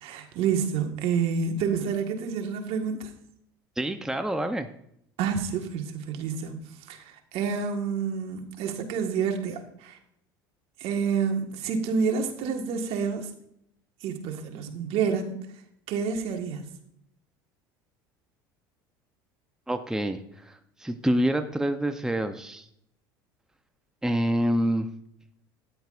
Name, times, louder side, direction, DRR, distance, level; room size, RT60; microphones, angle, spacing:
voice 1, 0.0-3.1 5.2-10.0 10.8-13.3 14.0-15.3 15.9-16.6, right 6 dB, 60° right, 5 dB, 1.7 m, -28 dB
voice 2, 3.8-4.7 19.7-22.7 24.0-24.9, right 1 dB, 5° right, 7 dB, 0.8 m, -27 dB
13.0 x 10.5 x 2.6 m, 0.73 s
hypercardioid pair, 75°, 11 cm